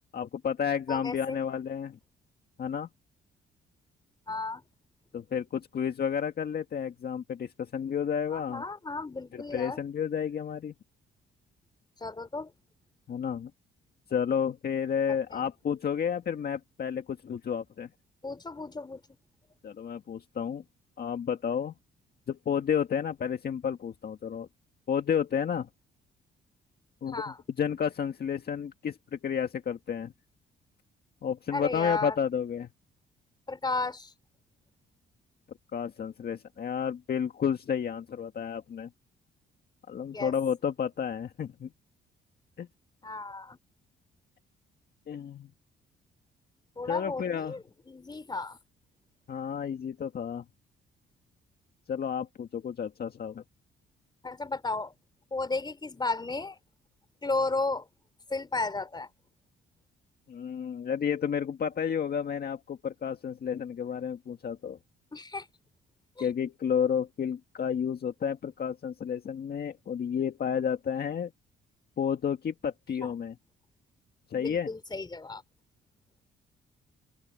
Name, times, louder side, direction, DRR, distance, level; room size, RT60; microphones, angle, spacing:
voice 1, 0.1-2.0 2.6-2.9 5.1-8.6 9.3-10.7 13.1-13.5 14.1-17.9 19.6-20.6 21.0-21.7 22.3-24.5 24.9-25.7 27.0-27.1 27.6-30.1 31.2-32.7 35.7-38.9 39.9-41.7 42.6-42.7 45.1-45.5 46.9-47.6 49.3-50.4 51.9-53.4 60.3-64.8 66.2-71.3 72.0-73.3 74.3-74.7, left 7 dB, 50° left, 1.9 m, -31 dB
voice 2, 0.9-1.4 4.3-4.6 8.3-9.8 12.0-12.5 15.3-15.5 18.2-19.0 27.0-27.4 31.5-32.2 33.5-34.1 40.1-40.3 43.0-43.6 46.8-48.6 54.2-54.9 55.3-56.6 57.2-57.9 58.3-59.1 65.1-65.5 66.2-66.3 73.0-73.2 74.3-75.4, left 3 dB, 20° left, 3.7 m, -34 dB
open air
cardioid pair, 90°, 20 cm